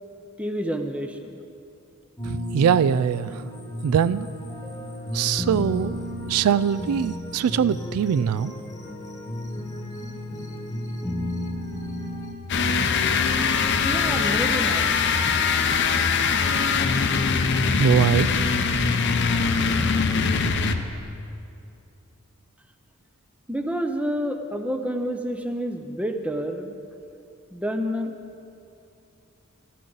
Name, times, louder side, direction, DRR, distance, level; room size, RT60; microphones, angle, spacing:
voice 1, 0.4-1.4 13.8-14.9 23.5-26.7 27.5-28.1, equal, 5° right, 6 dB, 0.5 m, -28 dB
sound 1, 2.2-12.3, left 1 dB, 15° left, 1.2 m, -33 dB
voice 2, 2.2-3.4 3.8-4.3 5.1-6.0 6.3-8.5 17.8-18.3, right 8 dB, 85° right, 17 dB, 0.3 m, -22 dB
sound 2, 12.5-21.0, left 5 dB, 50° left, 0.6 m, -22 dB
14.5 x 12.0 x 3.9 m, 2.7 s
head